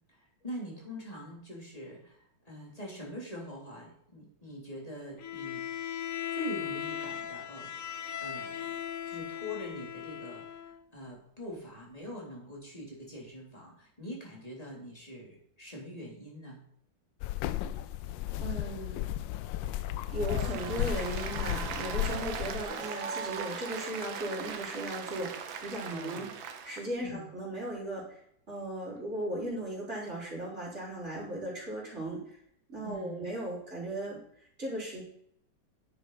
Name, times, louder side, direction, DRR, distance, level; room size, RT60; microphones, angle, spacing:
voice 1, 0.1-5.6 6.3-8.8 9.1-16.6 25.9-26.3 27.0-27.3 32.8-33.3, equal, 20° left, -3 dB, 3.6 m, -43 dB
Bowed string instrument, 5.2-10.8, left 9 dB, 55° left, 1.0 m, -38 dB
sound 1, 17.2-22.6, left 12 dB, 80° left, 1.2 m, -34 dB
voice 2, 18.4-19.1 19.6-19.8 20.1-26.3 26.6-28.2 28.5-32.4 32.7-35.0, right 1 dB, 35° right, -6 dB, 5.1 m, -37 dB
Applause, 20.1-26.9, right 6 dB, 85° right, 1.8 m, -39 dB
11.0 x 7.7 x 4.8 m, 0.69 s
omnidirectional pair, 2.1 m